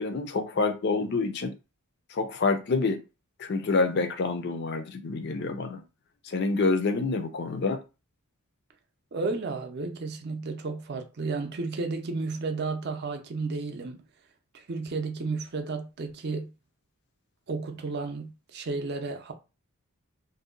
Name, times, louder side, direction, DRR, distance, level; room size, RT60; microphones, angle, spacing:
voice 1, 0.0-1.5 2.1-3.0 3.4-5.8 6.2-7.8, left 3 dB, 50° left, 0.4 m, -27 dB
voice 2, 9.1-14.0 14.5-16.5 17.5-19.3, right 3 dB, 45° right, 0.5 m, -32 dB
2.7 x 2.1 x 3.7 m
head